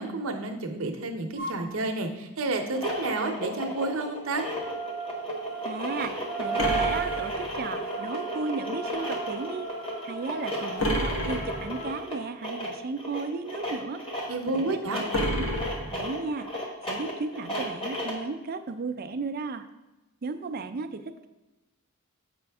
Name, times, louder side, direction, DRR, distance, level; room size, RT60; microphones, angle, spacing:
voice 1, 0.0-4.5 14.3-15.0, right 2 dB, 65° right, 4 dB, 0.8 m, -30 dB
sound 1, 1.4-1.6 4.5-12.0, right 4 dB, 40° left, 2.5 m, -36 dB
sound 2, 2.6-18.3, equal, 25° left, 1.3 m, -34 dB
voice 2, 5.6-9.7 10.0-14.0 14.5-15.4 15.9-19.6 20.2-21.3, right 4 dB, 45° right, 9 dB, 0.4 m, -35 dB
sound 3, 6.6-8.0 10.8-12.0 15.1-16.5, equal, 60° left, 1.2 m, -30 dB
7.7 x 5.1 x 3.5 m, 1.0 s
head